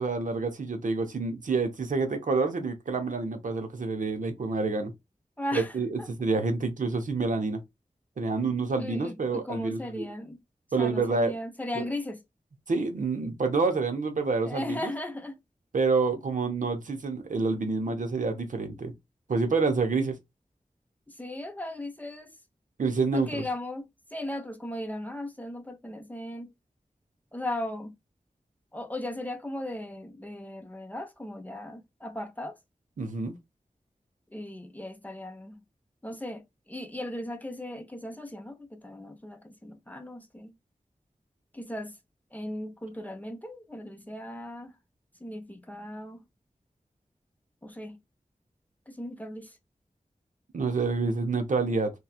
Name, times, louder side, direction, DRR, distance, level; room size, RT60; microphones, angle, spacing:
voice 1, 0.0-4.9 5.5-7.6 8.2-10.1 10.7-11.3 11.7-11.8 12.7-14.9 15.7-18.9 19.3-20.2 22.8-23.4 33.0-33.3 50.5-51.9, right 4 dB, 75° right, 0.6 m, -28 dB
voice 2, 5.4-5.7 8.8-10.4 10.8-12.2 14.4-15.4 21.2-22.3 23.1-23.8 24.1-26.5 27.3-27.9 28.7-32.5 34.3-35.6 36.0-36.4 36.7-40.5 41.5-41.9 42.3-44.7 45.2-46.2 47.6-48.0 48.9-49.5, left 1 dB, 10° left, 0.5 m, -37 dB
2.8 x 2.2 x 2.3 m
wide cardioid pair, 75°, 14 cm